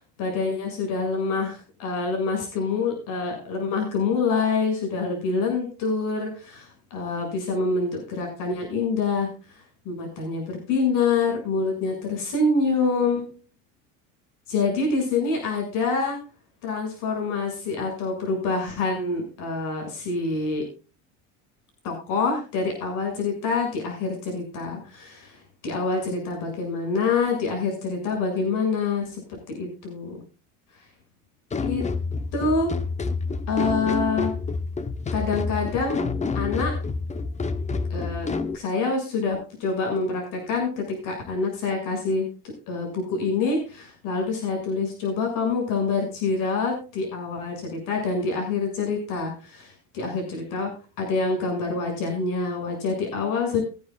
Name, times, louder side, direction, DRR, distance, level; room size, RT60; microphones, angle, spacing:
voice 1, 0.2-9.3 9.9-13.3 14.5-16.2 16.6-20.7 21.8-25.4 25.6-30.2 31.7-31.8 32.3-32.8 33.5-34.3 35.1-36.1 36.3-36.7 37.9-38.3 38.5-42.3 42.7-50.7 51.0-53.6, left 4 dB, 75° left, 1 dB, 7.1 m, -26 dB
sound 1, 31.5-38.6, left 4 dB, 20° left, 1.0 m, -28 dB
22.5 x 10.0 x 2.4 m, 0.34 s
cardioid pair, 115°, 32 cm